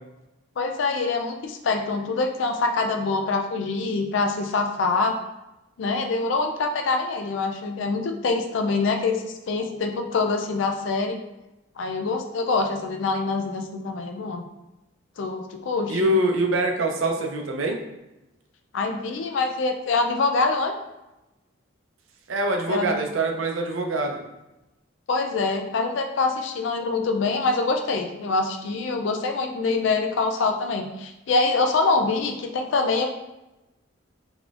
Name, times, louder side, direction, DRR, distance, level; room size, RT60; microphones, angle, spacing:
voice 1, 0.6-5.1 5.8-11.2 11.8-14.4 15.2-16.2 18.7-20.8 22.7-23.0 25.1-33.1, left 3 dB, 70° left, 5 dB, 0.4 m, -25 dB
voice 2, 15.9-17.8 22.3-24.2, right 1 dB, 90° right, 3 dB, 0.6 m, -24 dB
3.8 x 3.0 x 2.4 m, 0.99 s
head